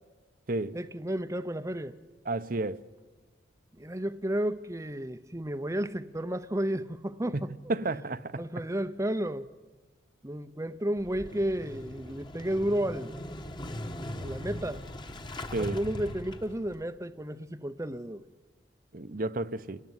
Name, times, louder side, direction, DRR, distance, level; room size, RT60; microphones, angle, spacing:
voice 1, 0.7-1.9 3.8-7.5 8.4-9.5 10.2-13.1 14.2-14.8 15.6-18.2, right 1 dB, 15° right, 0.7 m, -32 dB
voice 2, 2.3-2.8 7.7-8.4 15.5-15.8 18.9-19.8, right 2 dB, 50° right, 0.9 m, -31 dB
Motorcycle / Engine starting, 11.0-16.8, left 1 dB, 25° left, 1.4 m, -40 dB
27.5 x 19.5 x 9.6 m
head